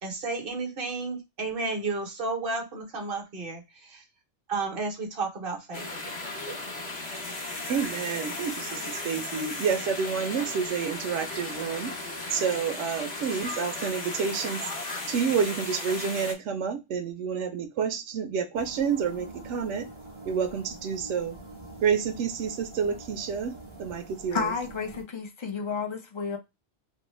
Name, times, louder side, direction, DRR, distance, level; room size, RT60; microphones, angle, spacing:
voice 1, 0.0-4.0 4.5-5.9, right 3 dB, 55° right, 1.1 m, -32 dB
sound 1, 5.7-16.3, left 2 dB, 85° left, 1.5 m, -36 dB
voice 2, 7.7-11.9 12.3-14.7 15.1-19.9 20.2-21.4 21.8-24.5, right 6 dB, 85° right, 0.9 m, -29 dB
sound 2, 18.5-25.0, right 2 dB, 25° right, 1.1 m, -45 dB
voice 3, 24.3-26.4, left 5 dB, 45° left, 0.4 m, -31 dB
3.4 x 2.2 x 3.0 m
omnidirectional pair, 1.2 m